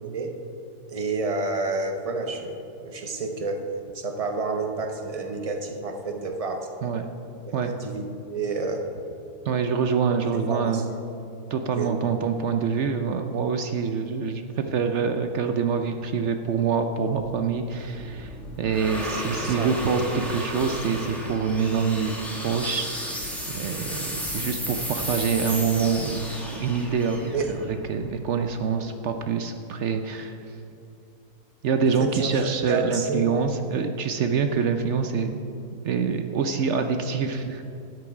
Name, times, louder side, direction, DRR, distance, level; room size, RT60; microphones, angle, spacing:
voice 1, 0.0-0.3 0.9-2.6 2.8-3.7 3.9-6.7 7.4-8.9 10.3-10.8 11.7-11.9 19.4-19.7 27.3-27.5 32.0-33.2, right 3 dB, 30° right, 4 dB, 0.7 m, -29 dB
voice 2, 9.5-10.9 11.5-22.1 22.4-26.3 26.5-30.4 31.6-35.4 35.8-37.6, right 6 dB, 65° right, 6 dB, 0.7 m, -26 dB
sound 1, 17.2-28.4, equal, ahead, 1.3 m, -34 dB
12.0 x 8.0 x 4.8 m, 2.7 s
omnidirectional pair, 1.6 m